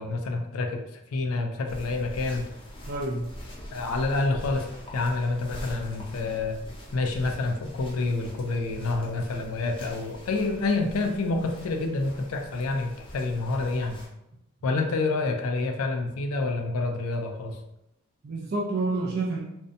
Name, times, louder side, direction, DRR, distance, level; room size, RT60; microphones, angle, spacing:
voice 1, 0.0-2.5 3.7-6.6 6.9-14.0 14.6-17.6, left 3 dB, 80° left, 4 dB, 0.4 m, -28 dB
sound 1, 1.7-14.1, equal, 25° left, 0.5 m, -43 dB
voice 2, 2.9-3.3 18.2-19.4, right 2 dB, 45° right, -3 dB, 0.3 m, -28 dB
2.6 x 2.1 x 2.5 m, 0.85 s
head